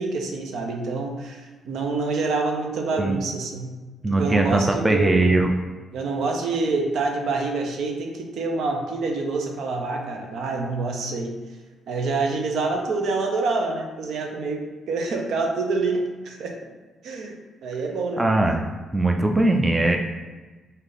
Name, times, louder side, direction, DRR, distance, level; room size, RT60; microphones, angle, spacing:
voice 1, 0.0-3.7 4.1-5.3 5.9-11.3 11.9-16.5 17.0-17.3 17.6-18.2, right 3 dB, 75° right, 2 dB, 0.6 m, -26 dB
voice 2, 4.0-5.5 18.2-18.6 18.9-20.0, right 2 dB, 15° right, 3 dB, 0.4 m, -20 dB
3.3 x 2.8 x 3.8 m, 1.3 s
cardioid pair, 90°, 0 cm